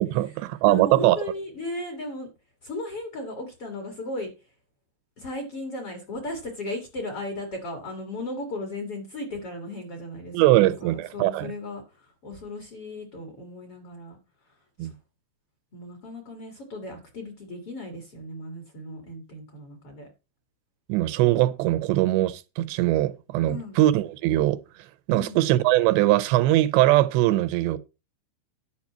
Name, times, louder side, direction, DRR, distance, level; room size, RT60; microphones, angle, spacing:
voice 1, 0.0-1.2 10.3-11.5 14.8-14.9 20.9-24.6 25.1-27.8, right 15 dB, 80° right, 2.8 m, -21 dB
voice 2, 0.7-2.3 2.6-4.3 5.2-14.2 14.5-14.9 15.7-20.1 23.4-23.8 25.1-25.4, left 1 dB, 45° left, 2.2 m, -36 dB
11.0 x 4.5 x 7.3 m
omnidirectional pair, 5.1 m